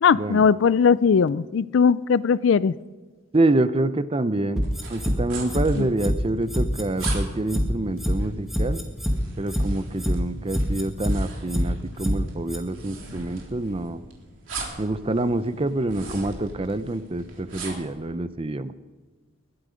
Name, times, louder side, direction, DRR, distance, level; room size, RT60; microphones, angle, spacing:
voice 1, 0.0-2.7 5.7-5.9, left 6 dB, 70° left, 17 dB, 0.4 m, -19 dB
voice 2, 3.3-4.6 4.9-8.8 9.4-14.0 14.8-18.7, right 2 dB, 30° right, 12 dB, 0.6 m, -26 dB
sound 1, 4.6-5.2 5.5-5.6 6.0-6.1 6.5-7.1 7.5-7.6 8.0-8.2 8.5-9.2 9.5-9.6 10.0-10.1 10.5-11.2 11.5-11.6 12.0-12.2 12.5-12.6, equal, ahead, 1.9 m, -24 dB
sound 2, 4.6-18.0, right 3 dB, 75° right, 3.7 m, -41 dB
21.0 x 12.0 x 5.2 m, 1.4 s
head